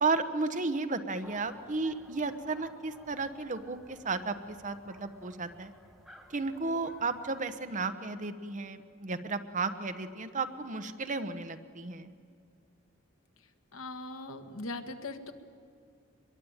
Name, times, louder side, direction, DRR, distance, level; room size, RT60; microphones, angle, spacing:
voice 1, 0.0-5.7 6.3-12.1, right 3 dB, 40° right, 8 dB, 1.1 m, -33 dB
sound 1, 1.2-7.4, equal, ahead, 2.1 m, -56 dB
voice 2, 13.7-15.3, left 2 dB, 80° left, 6 dB, 1.7 m, -40 dB
24.0 x 22.5 x 9.0 m, 2.3 s
head